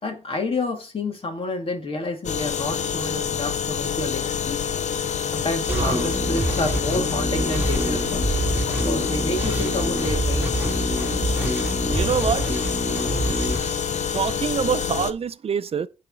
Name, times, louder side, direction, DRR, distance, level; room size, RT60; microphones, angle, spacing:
voice 1, 0.0-4.6 5.3-8.3 8.8-10.6, left 2 dB, 50° left, 2.4 m, -29 dB
sound 1, 2.2-15.1, left 8 dB, 85° left, 0.6 m, -27 dB
sound 2, 5.7-14.5, right 1 dB, 15° right, 1.9 m, -26 dB
voice 2, 5.7-6.1 11.9-12.4 14.1-15.9, right 7 dB, 55° right, 0.5 m, -25 dB
9.1 x 4.2 x 4.9 m
wide cardioid pair, 95°, 12 cm